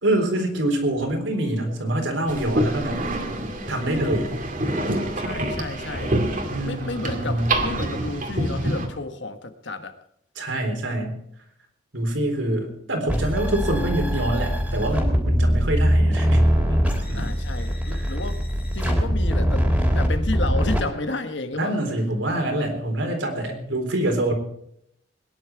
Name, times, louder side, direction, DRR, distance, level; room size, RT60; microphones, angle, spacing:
voice 1, 0.0-3.0 3.7-4.3 6.5-7.5 10.4-11.2 11.9-17.3 21.6-24.3, right 1 dB, 80° right, 3 dB, 3.9 m, -25 dB
sound 1, 1.2-2.2 2.5-6.1, equal, 25° left, 4.8 m, -42 dB
sound 2, 2.3-8.9, right 1 dB, 45° right, 2.2 m, -27 dB
voice 2, 5.1-6.2 6.6-10.0 17.1-18.4 18.7-19.7 19.9-21.8, left 2 dB, 65° left, 8 dB, 1.5 m, -31 dB
sound 3, 13.1-20.8, equal, 5° right, 3.3 m, -22 dB
21.5 x 10.5 x 4.7 m, 0.71 s
head